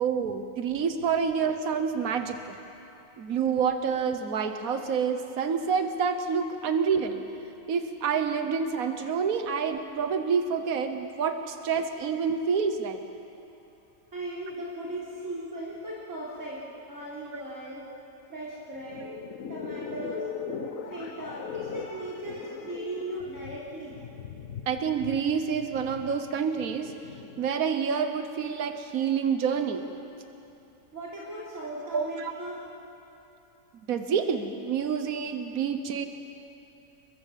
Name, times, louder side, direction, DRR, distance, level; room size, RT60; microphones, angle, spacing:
voice 1, 0.0-2.6 3.2-7.2 7.7-13.0 14.5-14.6 24.7-26.9 27.4-29.8 31.9-32.3 33.9-36.1, right 6 dB, 80° right, 7 dB, 1.5 m, -28 dB
voice 2, 14.1-17.9 18.3-19.1 19.5-20.3 20.9-24.0 30.9-32.6, right 1 dB, 65° right, -7 dB, 3.9 m, -38 dB
sound 1, 18.7-27.5, left 6 dB, 70° left, 1.6 m, -39 dB
28.0 x 22.5 x 7.5 m, 2.8 s
omnidirectional pair, 1.5 m